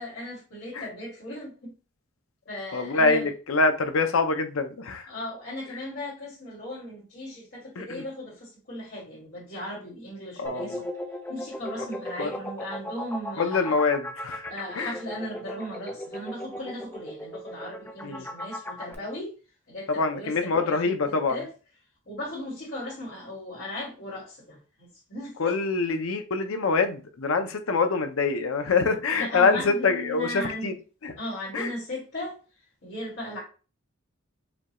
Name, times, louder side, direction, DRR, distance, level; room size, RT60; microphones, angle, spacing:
voice 1, 0.0-1.7 2.5-3.3 5.1-10.9 11.3-13.8 14.5-19.3 19.7-21.5 22.1-25.6 29.1-30.8 31.2-32.4 32.8-33.4, left 1 dB, 55° left, 1.8 m, -37 dB
voice 2, 2.7-5.1 7.8-8.0 10.4-10.8 12.2-12.3 13.4-14.4 14.8-14.9 18.0-18.3 19.9-21.4 25.4-30.7 31.0-31.1 31.5-31.7, left 4 dB, 80° left, 0.6 m, -25 dB
sound 1, 10.5-18.9, equal, 10° left, 0.5 m, -36 dB
5.1 x 2.3 x 3.0 m
head